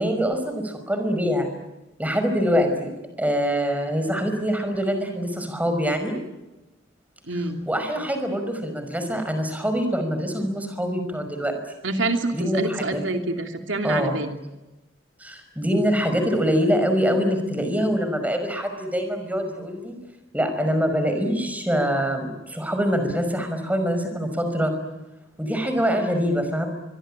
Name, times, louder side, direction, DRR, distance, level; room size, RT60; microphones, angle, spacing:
voice 1, 0.0-1.5 2.0-2.9 3.2-6.2 7.7-11.6 12.3-13.0 13.8-14.2 15.2-20.0 20.3-24.7 25.4-26.7, equal, 10° right, 7 dB, 5.4 m, -24 dB
voice 2, 7.3-7.6 11.8-14.4, right 2 dB, 85° right, 5 dB, 2.8 m, -27 dB
24.5 x 24.0 x 8.8 m, 1.0 s
head